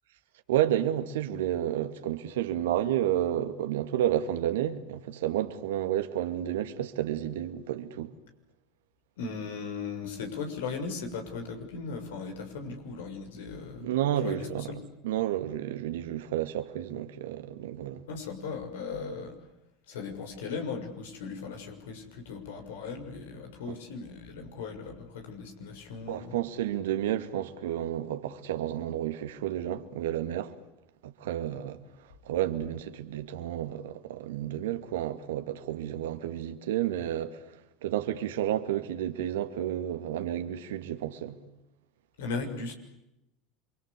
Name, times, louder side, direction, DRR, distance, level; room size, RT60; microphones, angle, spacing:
voice 1, 0.5-8.1 13.8-14.8 15.0-18.0 23.7-23.8 26.1-30.6 31.0-41.4, right 11 dB, 80° right, 2.3 m, -31 dB
voice 2, 9.2-13.9 14.2-14.8 18.1-19.4 19.9-26.3 42.2-42.7, left 5 dB, 75° left, 6.7 m, -37 dB
28.5 x 24.5 x 8.4 m
hypercardioid pair, 85°, 0 cm